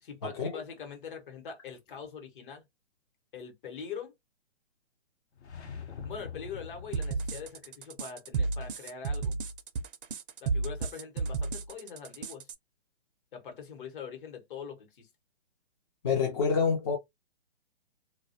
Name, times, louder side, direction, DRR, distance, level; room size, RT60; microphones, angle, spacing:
voice 1, 0.0-2.6 3.3-4.1 6.0-9.4 10.4-12.5 13.3-15.1, left 6 dB, 50° left, 1.0 m, -43 dB
sound 1, 5.3-7.6, left 6 dB, 75° left, 0.8 m, -44 dB
sound 2, 6.9-12.5, right 4 dB, 55° right, 0.5 m, -32 dB
voice 2, 16.0-17.0, left 5 dB, 25° left, 0.4 m, -27 dB
2.2 x 2.1 x 2.6 m
hypercardioid pair, 140°, 34 cm